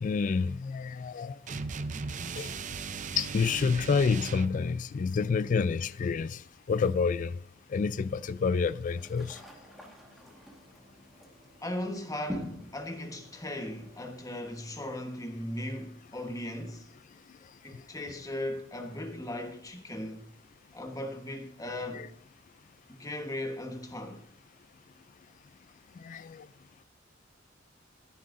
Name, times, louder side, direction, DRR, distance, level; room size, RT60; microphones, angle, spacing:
voice 1, 0.0-1.4 2.4-2.5 3.2-6.4 6.7-7.3 7.7-9.4 21.9-22.1 26.0-26.5, left 5 dB, 40° left, 0.3 m, -28 dB
sound 1, 1.5-4.6, right 4 dB, 40° right, 0.5 m, -37 dB
sound 2, 8.9-14.1, equal, ahead, 1.6 m, -45 dB
voice 2, 11.6-16.9 17.6-20.3 20.7-22.1 22.9-24.2, left 1 dB, 20° left, 1.2 m, -38 dB
13.5 x 10.0 x 2.6 m
head